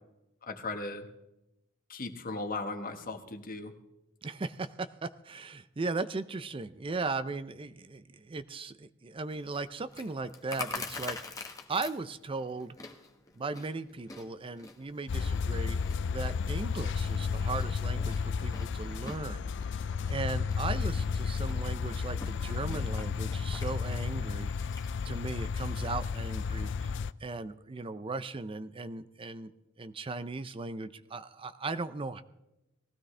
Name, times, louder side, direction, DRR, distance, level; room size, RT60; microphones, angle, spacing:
voice 1, 0.4-1.1 1.9-3.7, left 3 dB, 45° left, 5 dB, 1.5 m, -37 dB
voice 2, 4.2-11.2 11.7-12.8 13.4-15.8 16.1-19.4 19.7-24.5 25.0-29.5 29.8-32.2, right 3 dB, 25° right, 12 dB, 0.5 m, -37 dB
Chewing mastication, 9.3-24.9, left 3 dB, 20° left, 1.4 m, -46 dB
sound 1, 15.1-27.1, left 5 dB, 60° left, 0.4 m, -32 dB
19.5 x 15.5 x 3.3 m, 0.92 s
head